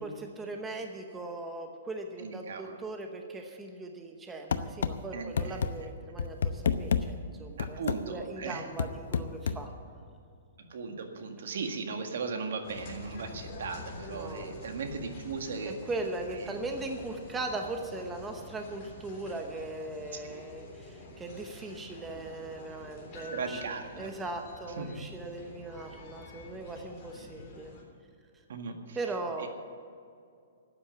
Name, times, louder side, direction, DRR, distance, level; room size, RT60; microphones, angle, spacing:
voice 1, 0.4-7.8 8.1-9.7 14.1-14.5 15.9-27.7 29.0-29.5, right 2 dB, 10° right, 3 dB, 0.9 m, -39 dB
voice 2, 2.2-2.8 5.1-5.6 7.6-8.7 10.6-15.8 16.4-16.6 20.1-20.4 23.3-24.1 24.8-25.0 28.5-29.0 29.4-29.5, right 4 dB, 70° right, 5 dB, 1.8 m, -37 dB
sound 1, 4.5-4.9 5.4-5.7 6.2-7.0 7.6-8.0 8.8-9.6, left 6 dB, 75° left, 0.8 m, -28 dB
sound 2, 12.6-27.8, left 2 dB, 30° left, 3.6 m, -47 dB
12.5 x 8.7 x 9.4 m, 2.3 s
hypercardioid pair, 165°, 0 cm